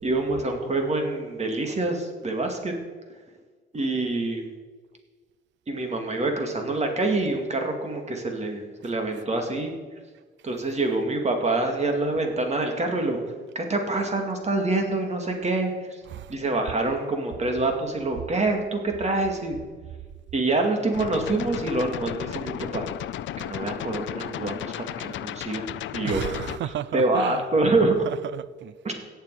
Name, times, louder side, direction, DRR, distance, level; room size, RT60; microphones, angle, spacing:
voice 1, 0.0-2.7 3.7-4.5 5.7-9.7 10.4-13.2 13.5-16.0 16.3-19.6 20.3-22.9 23.4-26.2 26.6-27.9 28.8-28.9, right 2 dB, 35° right, 2.4 m, -26 dB
sound 1, 20.9-26.6, left 13 dB, 70° left, 0.5 m, -34 dB
voice 2, 26.0-27.4 28.1-28.7, right 12 dB, 65° right, 0.6 m, -33 dB
17.5 x 6.9 x 4.9 m
cardioid pair, 90°, 20 cm